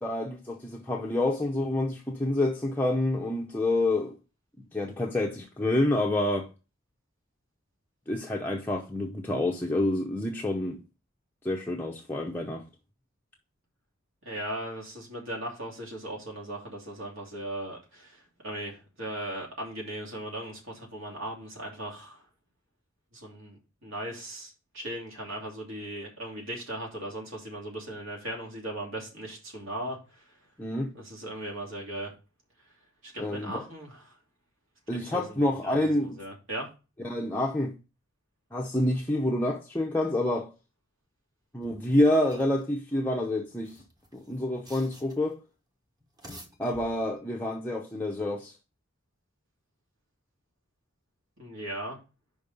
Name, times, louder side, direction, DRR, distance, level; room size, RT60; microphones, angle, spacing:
voice 1, 0.0-4.2 4.7-6.5 8.1-10.8 11.4-12.6 30.6-30.9 33.2-33.6 34.9-36.2 37.0-37.7 38.5-40.5 41.5-43.8 44.1-45.4 46.6-48.5, left 1 dB, 10° left, 0.7 m, -28 dB
voice 2, 14.2-22.2 23.1-30.3 30.9-32.1 33.0-34.1 34.9-36.7 51.4-52.0, right 1 dB, 65° right, 2.8 m, -38 dB
sound 1, 41.6-42.6 43.5-45.4 46.0-47.3, equal, 20° right, 1.1 m, -51 dB
5.3 x 5.2 x 5.3 m
head